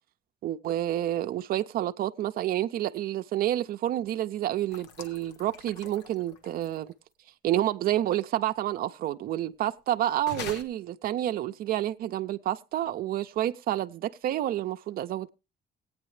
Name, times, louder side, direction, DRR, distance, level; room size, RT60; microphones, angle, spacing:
voice 1, 0.4-6.9 7.4-15.3, right 13 dB, 60° right, 0.5 m, -29 dB
sound 1, 4.7-6.9 10.2-10.6, left 6 dB, 90° left, 1.2 m, -43 dB
16.5 x 9.3 x 3.2 m
cardioid pair, 110°, 17 cm